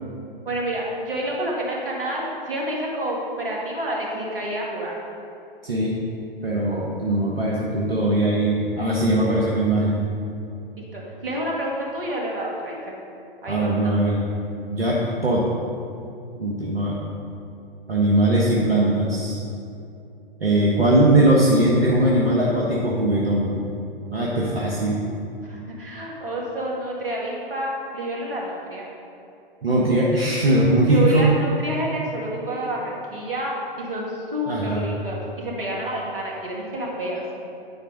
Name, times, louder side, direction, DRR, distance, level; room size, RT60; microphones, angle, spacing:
voice 1, 0.4-4.9 10.9-13.0 13.4-13.9 25.4-28.9 30.8-33.5 33.8-37.2, right 1 dB, 70° right, -3 dB, 2.3 m, -29 dB
voice 2, 5.6-6.0 6.4-10.0 13.5-14.2 14.7-15.5 16.4-17.0 17.9-19.4 20.4-23.6 24.1-25.0 29.6-31.3 34.5-34.8, right 1 dB, 85° right, -4 dB, 1.3 m, -20 dB
11.0 x 4.9 x 5.2 m, 2.7 s
figure-of-eight pair, 110°, 29 cm